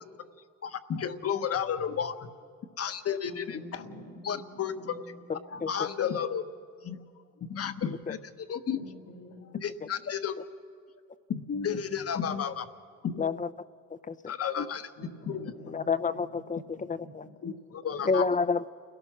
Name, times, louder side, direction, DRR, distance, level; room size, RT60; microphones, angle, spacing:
voice 1, 0.6-2.2 2.8-3.8 4.2-4.9 5.5-6.4 6.8-7.0 7.4-8.2 8.5-8.8 9.5-10.4 11.3-12.7 13.0-13.3 14.3-14.9 15.3-15.4 17.4-18.2, left 7 dB, 50° left, 10 dB, 1.2 m, -32 dB
voice 2, 3.2-5.2 5.5-6.2 8.7-9.5 15.0-16.4 16.9-17.3 17.9-18.2, left 1 dB, 85° left, -1 dB, 3.9 m, -48 dB
voice 3, 5.3-5.9 9.8-9.9 13.2-13.5 13.9-14.2 15.7-17.3 18.0-18.7, left 5 dB, 25° left, 15 dB, 0.7 m, -29 dB
29.0 x 17.5 x 6.1 m, 2.1 s
cardioid pair, 90°, 30 cm